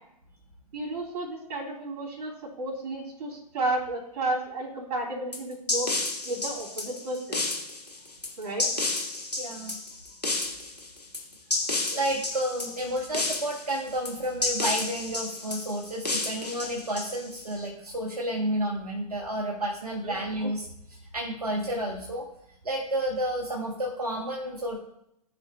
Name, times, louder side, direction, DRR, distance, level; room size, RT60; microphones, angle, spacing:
voice 1, 0.7-5.9 6.2-7.5 8.4-8.7 20.0-20.2, right 2 dB, 35° right, -3 dB, 3.0 m, -32 dB
sound 1, 5.3-17.5, left 2 dB, 85° left, 1.5 m, -31 dB
voice 2, 9.4-9.8 11.9-22.2 22.6-24.8, right 1 dB, 70° right, -1 dB, 1.2 m, -31 dB
12.0 x 5.2 x 2.3 m, 0.76 s
figure-of-eight pair, 110°, 20 cm